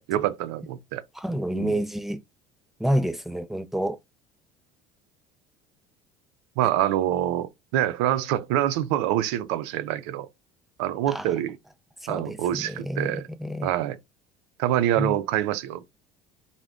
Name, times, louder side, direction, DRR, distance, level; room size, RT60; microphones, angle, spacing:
voice 1, 0.0-1.0 1.5-1.7 6.6-10.3 10.8-11.6 12.1-13.3 13.6-14.0 14.6-15.9, right 12 dB, 85° right, 0.5 m, -26 dB
voice 2, 1.2-2.2 2.8-4.0 11.1-11.3 12.0-13.7 15.0-15.2, equal, ahead, 0.4 m, -28 dB
3.5 x 2.1 x 3.6 m
supercardioid pair, 105°, 14 cm